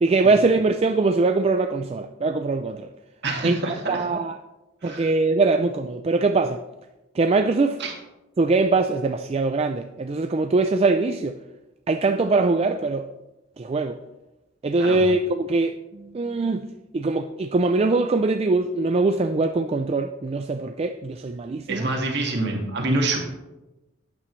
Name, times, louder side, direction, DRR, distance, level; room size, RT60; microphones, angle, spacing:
voice 1, 0.0-2.9 3.4-4.4 4.8-6.6 7.1-7.8 8.4-11.3 11.9-13.1 13.6-14.0 14.6-21.9, right 3 dB, 30° right, 0.4 m, -22 dB
voice 2, 3.2-3.8 4.8-5.1 7.8-7.9 14.8-15.0 21.7-23.2, right 2 dB, 55° right, 1.9 m, -26 dB
12.5 x 8.8 x 3.2 m
head